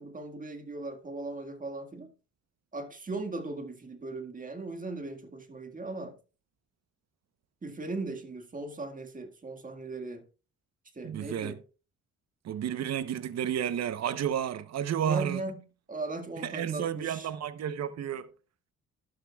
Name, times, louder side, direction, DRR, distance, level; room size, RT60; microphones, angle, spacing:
voice 1, 0.0-2.1 2.7-6.2 7.6-10.3 11.0-11.6 15.0-17.3, right 3 dB, 25° right, 1.9 m, -38 dB
voice 2, 11.0-11.5 12.4-15.4 16.4-18.3, right 9 dB, 60° right, 1.0 m, -31 dB
12.5 x 11.5 x 2.4 m
cardioid pair, 90°, 30 cm